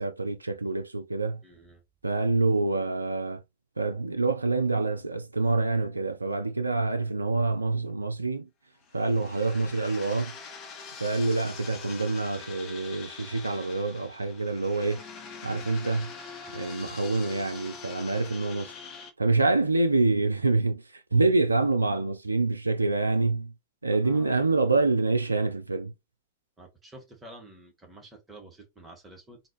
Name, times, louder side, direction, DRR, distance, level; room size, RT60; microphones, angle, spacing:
voice 1, 0.0-1.4 2.0-3.4 3.8-8.5 8.9-10.3 11.0-15.0 15.4-16.1 16.5-18.7 19.2-23.5 23.8-25.9, right 3 dB, 80° right, 0.4 m, -26 dB
voice 2, 1.4-1.8 15.9-16.1 16.4-16.5 23.9-24.5 26.6-29.4, right 2 dB, 15° right, 1.5 m, -50 dB
sound 1, 8.8-19.1, left 5 dB, 35° left, 1.0 m, -44 dB
4.0 x 2.5 x 3.1 m
figure-of-eight pair, 90°, 0 cm